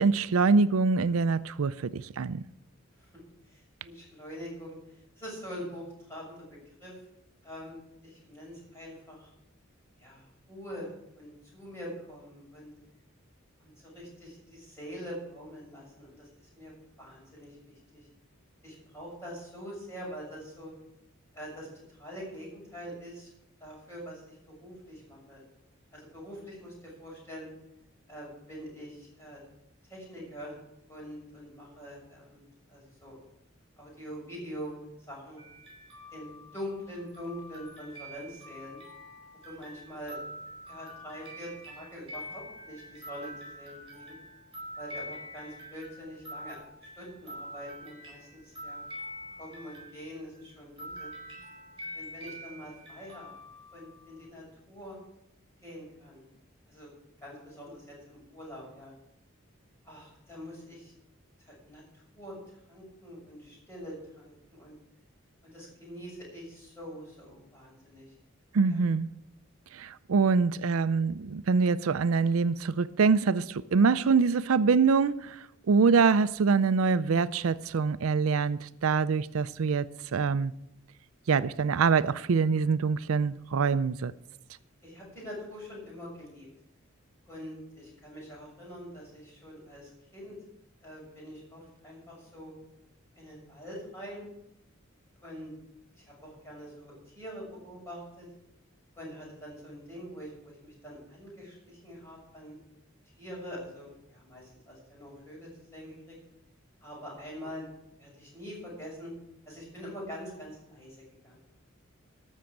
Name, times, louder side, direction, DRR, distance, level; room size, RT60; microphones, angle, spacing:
voice 1, 0.0-2.4 68.5-69.1 69.7-80.5 81.3-84.1, right 5 dB, 85° right, 0.5 m, -25 dB
voice 2, 3.5-6.9 7.4-7.8 8.0-9.3 10.0-12.7 13.6-16.7 17.0-18.1 18.6-20.7 21.3-23.3 23.6-25.4 25.9-27.5 28.1-29.4 29.9-30.5 30.9-32.4 32.7-33.1 33.8-35.4 36.1-38.8 39.4-40.1 40.7-44.2 44.7-48.8 49.4-51.1 51.9-53.3 53.7-55.0 55.6-56.2 56.7-56.9 57.2-58.9 59.8-60.9 61.4-64.7 65.4-68.1 68.7-68.8 84.8-86.5 87.3-90.4 90.8-92.5 93.1-94.2 95.2-95.5 95.9-98.3 98.9-102.6 103.2-106.2 106.8-107.7 108.0-109.1 109.4-111.4, equal, 15° left, 6.6 m, -44 dB
sound 1, 35.4-50.4 50.8-54.2, equal, 25° right, 5.9 m, -45 dB
13.5 x 6.4 x 8.5 m
head